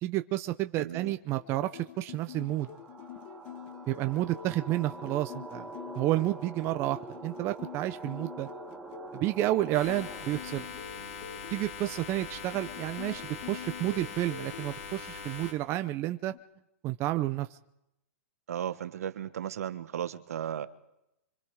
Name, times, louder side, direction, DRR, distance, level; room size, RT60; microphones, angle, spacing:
voice 1, 0.0-2.7 3.9-5.6 6.0-8.5 9.1-10.7 11.5-16.3 16.8-17.5, right 15 dB, 30° right, 9 dB, 0.7 m, -30 dB
voice 2, 0.8-1.1 18.5-20.7, right 9 dB, 75° right, 11 dB, 1.4 m, -35 dB
sound 1, 1.3-11.6 12.4-14.7 15.9-16.4, left 9 dB, 45° left, 2.0 m, -47 dB
sound 2, 2.2-10.6, right 2 dB, 5° right, 2.3 m, -45 dB
sound 3, 9.7-15.5, left 5 dB, 65° left, 3.5 m, -42 dB
29.0 x 25.0 x 4.8 m, 0.85 s
hypercardioid pair, 130°, 8 cm